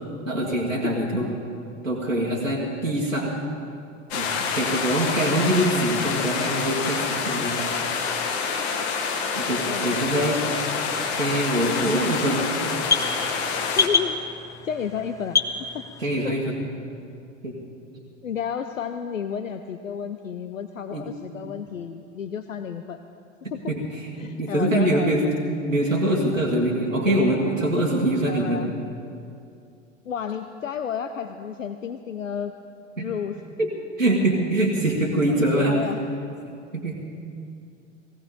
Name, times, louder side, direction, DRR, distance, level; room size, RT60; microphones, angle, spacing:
voice 1, 0.2-1.3 1.8-3.4 4.1-7.6 9.4-10.4 11.1-12.4 16.0-16.5 17.4-17.6 20.9-21.2 23.7-25.2 25.7-28.6 33.0-33.1 33.6-33.7 34.0-35.8 36.7-36.9, right 1 dB, 90° right, -4 dB, 1.6 m, -24 dB
sound 1, 4.1-13.9, left 5 dB, 55° left, 1.7 m, -27 dB
voice 2, 9.5-10.1 13.8-14.2 14.6-15.9 16.2-16.4 18.2-23.0 24.2-25.3 28.3-28.7 30.1-32.5 33.0-33.4 35.3-36.0, left 7 dB, 80° left, 9 dB, 0.6 m, -32 dB
sound 2, 10.8-16.3, left 5 dB, 10° left, 0.5 m, -29 dB
18.5 x 16.0 x 3.9 m, 2.6 s
figure-of-eight pair, 85°, 39 cm